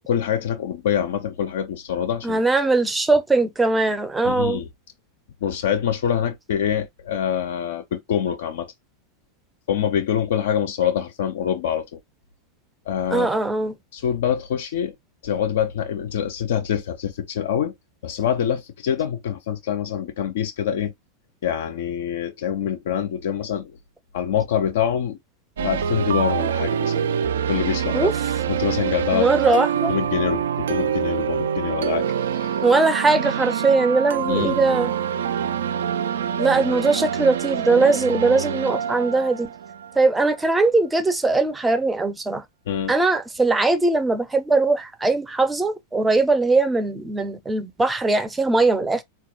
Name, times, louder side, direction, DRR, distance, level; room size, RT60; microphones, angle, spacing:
voice 1, 0.1-2.4 4.2-4.7 5.4-8.7 9.7-12.0 12.9-13.4 13.9-14.9 15.2-17.7 18.0-20.9 21.4-23.7 24.1-25.2 25.6-28.1 28.5-29.3 29.9-32.1 32.3-32.6 34.3-34.6 42.7-42.9, left 9 dB, 55° left, 0.4 m, -25 dB
voice 2, 2.2-4.6 13.1-13.8 27.9-28.1 29.1-29.9 32.6-34.9 36.4-39.5 40.0-42.4 42.9-49.0, right 3 dB, 10° right, 0.5 m, -20 dB
sound 1, 25.6-40.4, right 8 dB, 60° right, 0.3 m, -25 dB
3.9 x 2.2 x 2.7 m
figure-of-eight pair, 90°, 0 cm